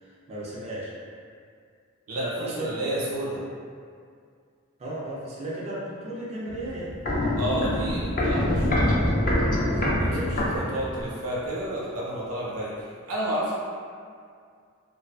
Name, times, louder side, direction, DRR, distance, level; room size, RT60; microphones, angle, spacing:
voice 1, 0.0-0.9 2.1-2.7 4.8-6.9 9.6-10.6, right 1 dB, 30° right, -7 dB, 0.4 m, -35 dB
voice 2, 2.6-3.4 7.4-8.8 10.0-13.5, right 1 dB, 80° right, -6 dB, 0.6 m, -31 dB
Walk footsteps, 6.5-11.2 11.5-11.6, left 1 dB, 40° left, 0.5 m, -25 dB
2.4 x 2.3 x 2.3 m, 2.2 s
head